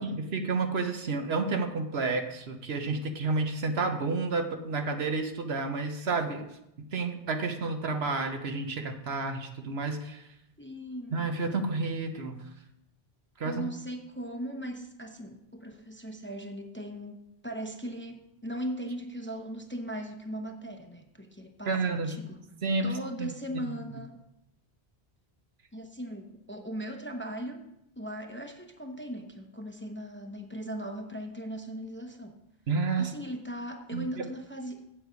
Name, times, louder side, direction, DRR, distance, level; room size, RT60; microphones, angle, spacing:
voice 1, 0.0-6.4 6.9-10.2 11.1-12.4 13.4-13.7 21.7-22.1 22.6-22.9 23.2-23.3 23.7-23.8 32.7-33.1 33.9-34.1, right 3 dB, 75° right, 6 dB, 1.2 m, -30 dB
voice 2, 10.6-11.3 13.4-22.4 22.8-24.2 25.7-27.6 28.0-32.4 33.0-34.8, equal, 10° left, 4 dB, 0.7 m, -38 dB
8.1 x 7.7 x 5.1 m, 0.82 s
omnidirectional pair, 1.1 m